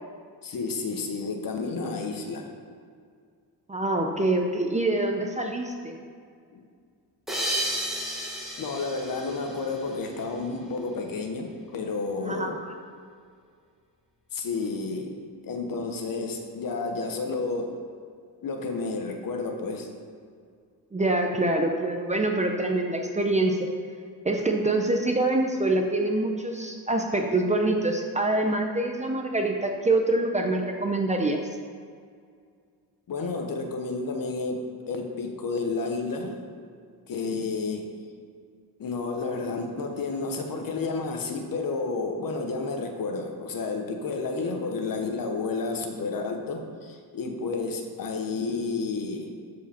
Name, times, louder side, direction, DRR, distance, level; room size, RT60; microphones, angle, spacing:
voice 1, 0.4-2.5 6.5-6.6 8.6-12.5 14.3-17.7 18.4-19.9 33.1-36.5 37.1-37.9 38.8-49.3, left 3 dB, 55° left, 4 dB, 1.1 m, -31 dB
voice 2, 3.7-6.0 12.2-12.7 20.9-23.7 24.2-31.4, right 2 dB, 15° right, 3 dB, 0.6 m, -25 dB
sound 1, 7.3-10.3, right 1 dB, ahead, 1.6 m, -32 dB
12.5 x 4.9 x 4.4 m, 2.2 s
cardioid pair, 135°, 41 cm